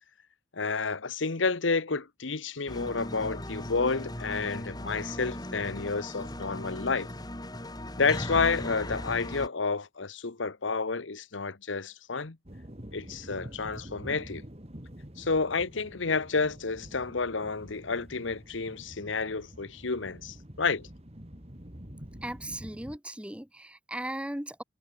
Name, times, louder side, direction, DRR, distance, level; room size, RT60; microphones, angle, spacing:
voice 1, 0.5-7.1 8.0-12.4 12.9-14.4 15.2-20.9, left 4 dB, 80° left, 1.2 m, -30 dB
sound 1, 2.7-9.5, left 1 dB, 20° left, 4.3 m, -38 dB
sound 2, 12.4-23.0, equal, 35° right, 3.4 m, -47 dB
voice 2, 22.2-24.6, right 1 dB, 5° right, 1.4 m, -37 dB
head